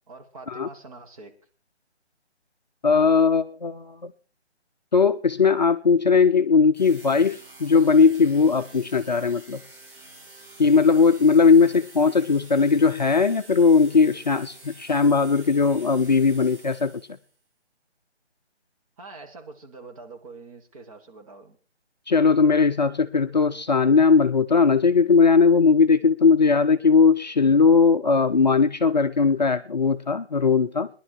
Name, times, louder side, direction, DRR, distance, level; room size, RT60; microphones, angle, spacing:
voice 1, 0.1-1.3 11.3-11.9 19.0-21.6, right 3 dB, 30° right, 3 dB, 1.9 m, -45 dB
voice 2, 2.8-4.1 4.9-9.6 10.6-17.0 22.1-30.9, left 5 dB, 40° left, 7 dB, 0.6 m, -19 dB
sound 1, 6.7-17.3, right 2 dB, 45° right, 6.3 m, -48 dB
19.0 x 11.0 x 4.6 m, 0.40 s
figure-of-eight pair, 155°, 34 cm